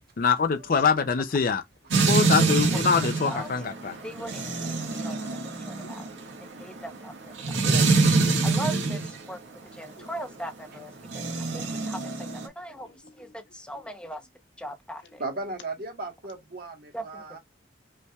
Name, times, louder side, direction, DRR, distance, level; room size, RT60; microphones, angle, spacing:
voice 1, 0.2-1.6 2.1-4.0, left 5 dB, 50° left, 0.5 m, -24 dB
sound 1, 1.9-9.2 11.0-12.5, right 3 dB, 80° right, 1.6 m, -25 dB
voice 2, 4.6-5.1 5.8-6.2 9.8-10.4 12.7-14.2 15.0-15.2, left 1 dB, 70° left, 1.3 m, -55 dB
voice 3, 5.7-6.0 6.6-7.1 8.4-9.0 9.3-9.4 9.8-10.9 11.5-12.0 12.6-12.9 13.5-14.2 14.6-15.0 16.9-17.0, right 1 dB, 5° left, 0.7 m, -37 dB
voice 4, 7.6-7.9 10.7-10.8 15.2-17.4, right 2 dB, 55° right, 1.4 m, -36 dB
5.4 x 3.3 x 2.3 m
head